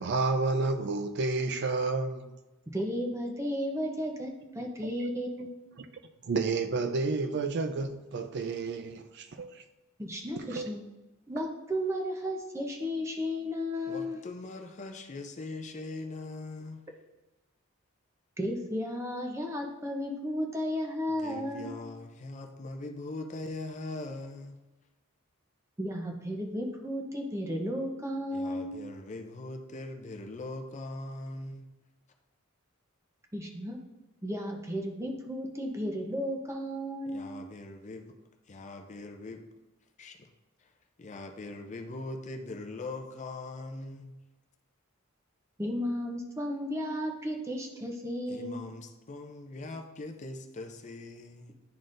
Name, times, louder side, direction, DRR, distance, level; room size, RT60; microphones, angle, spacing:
voice 1, 0.0-2.3 5.8-5.9 6.2-9.6 10.4-10.7, right 3 dB, 55° right, 7 dB, 0.4 m, -30 dB
voice 2, 2.7-5.5 10.0-10.8 11.3-14.2 18.4-21.7 25.8-28.7 33.3-33.8 34.2-37.3 45.6-48.6, equal, 15° right, 2 dB, 0.7 m, -34 dB
voice 3, 13.9-16.8 21.1-24.6 28.3-31.7 37.1-38.2 38.5-39.4 40.0-40.3 40.6-40.7 41.0-44.2 48.3-51.5, left 2 dB, 35° left, 5 dB, 0.5 m, -41 dB
10.5 x 4.0 x 2.5 m, 1.1 s
head